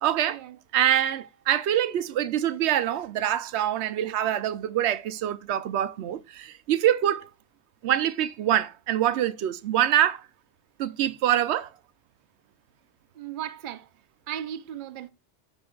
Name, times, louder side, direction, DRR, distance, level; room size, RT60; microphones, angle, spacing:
voice 1, 0.0-0.4 0.7-7.3 7.8-10.2 10.8-11.7, right 11 dB, 85° right, 0.8 m, -25 dB
voice 2, 13.1-13.9 14.3-15.1, right 10 dB, 55° right, 0.7 m, -36 dB
13.5 x 5.1 x 2.3 m
omnidirectional pair, 1.1 m